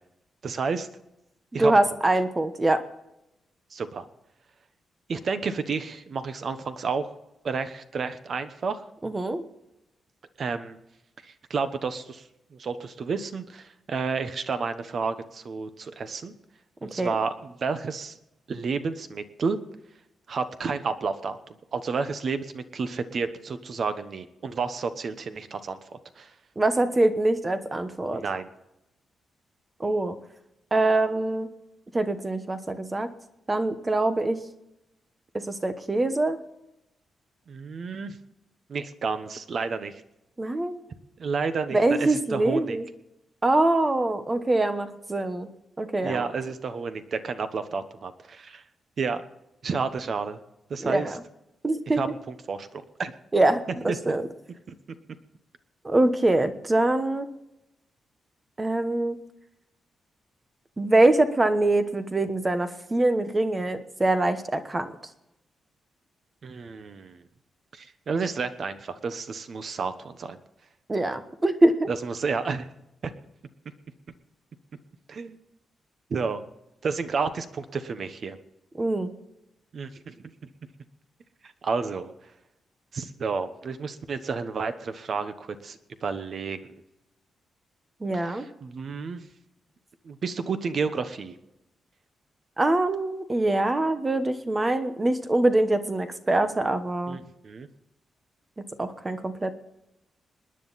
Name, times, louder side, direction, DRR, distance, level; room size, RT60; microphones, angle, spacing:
voice 1, 0.4-0.9 1.5-1.7 3.7-4.1 5.1-7.1 7.4-8.8 10.4-10.8 11.2-16.3 16.8-18.2 18.5-19.6 20.3-25.8 26.2-26.3 28.1-28.5 37.5-38.2 38.7-40.0 41.2-42.8 46.0-48.6 49.0-49.2 49.6-50.4 50.7-51.1 51.9-53.1 53.9-54.0 66.4-67.2 67.7-70.4 71.9-72.7 73.0-73.1 75.1-75.4 76.1-76.4 76.8-78.4 79.7-80.1 81.4-82.1 82.9-86.7 88.1-89.3 90.0-91.4 97.1-97.7, right 5 dB, 45° right, 11 dB, 1.1 m, -31 dB
voice 2, 1.5-2.8 9.0-9.4 16.8-17.2 26.6-28.2 29.8-30.2 30.7-31.5 31.9-33.1 33.5-34.4 35.3-36.4 40.4-40.8 41.7-42.8 43.4-45.5 45.8-46.3 50.8-51.1 51.6-52.0 53.3-54.3 55.8-57.3 58.6-59.2 60.8-64.9 70.9-71.9 78.8-79.1 88.0-88.5 92.6-97.2 98.8-99.5, right 2 dB, 20° right, 9 dB, 1.1 m, -24 dB
27.0 x 10.0 x 4.1 m, 0.89 s
wide cardioid pair, 150°, 0 cm